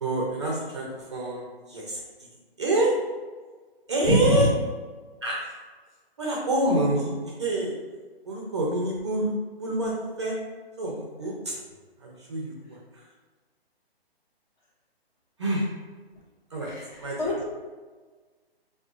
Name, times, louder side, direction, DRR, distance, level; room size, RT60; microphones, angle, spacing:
voice 1, 0.0-2.0 2.6-2.9 3.9-4.5 5.2-5.5 6.2-7.1 7.4-7.7 8.3-10.4 10.8-11.5 12.0-12.8 15.4-15.7 16.5-16.7 17.0-17.3, right 1 dB, 30° right, -3 dB, 0.4 m, -27 dB
voice 2, 4.1-4.5 16.6-17.5, equal, 45° left, -3 dB, 1.0 m, -24 dB
4.5 x 2.3 x 2.3 m, 1.4 s
hypercardioid pair, 155°, 31 cm